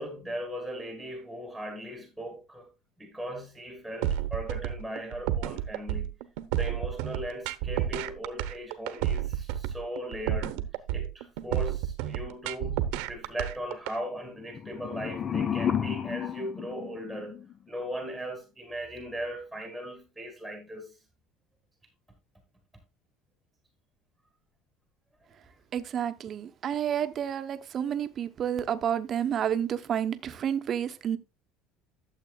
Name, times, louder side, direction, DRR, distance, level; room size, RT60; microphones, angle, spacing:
voice 1, 0.0-2.7 3.0-6.2 6.5-17.4 17.7-21.0, equal, 5° left, 2.0 m, -38 dB
sound 1, 4.0-13.9, right 11 dB, 80° right, 1.0 m, -30 dB
sound 2, 14.4-17.5, left 8 dB, 25° left, 0.6 m, -32 dB
voice 2, 25.7-31.2, right 9 dB, 35° right, 0.9 m, -30 dB
12.5 x 7.4 x 2.4 m
cardioid pair, 155°, 0 cm